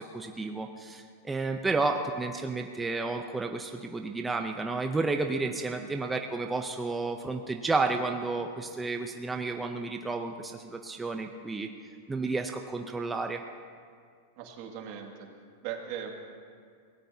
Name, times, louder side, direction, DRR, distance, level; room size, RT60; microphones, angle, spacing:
voice 1, 0.0-11.7 12.1-13.4, right 3 dB, 10° right, 4 dB, 0.6 m, -31 dB
voice 2, 14.4-15.3 15.6-16.1, right 9 dB, 55° right, 2 dB, 2.1 m, -39 dB
23.0 x 17.5 x 2.8 m, 2.1 s
supercardioid pair, 140°, 0 cm